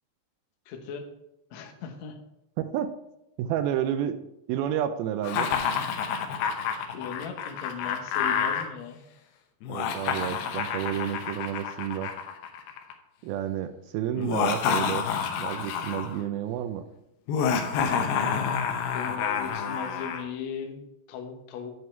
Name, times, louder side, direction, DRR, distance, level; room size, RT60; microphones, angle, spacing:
voice 1, 0.7-1.0 1.5-2.2 6.9-9.0 18.9-20.8 21.1-21.7, left 6 dB, 70° left, 4 dB, 1.8 m, -37 dB
voice 2, 2.6-2.9 3.4-4.2 4.5-5.5 9.7-12.1 13.2-15.0 15.4-16.8, right 10 dB, 80° right, 10 dB, 2.3 m, -30 dB
Laughter, 5.2-8.6 9.6-12.9 14.2-16.2 17.3-20.2, left 7 dB, 90° left, 3.0 m, -28 dB
9.6 x 5.3 x 4.5 m, 0.86 s
omnidirectional pair, 4.6 m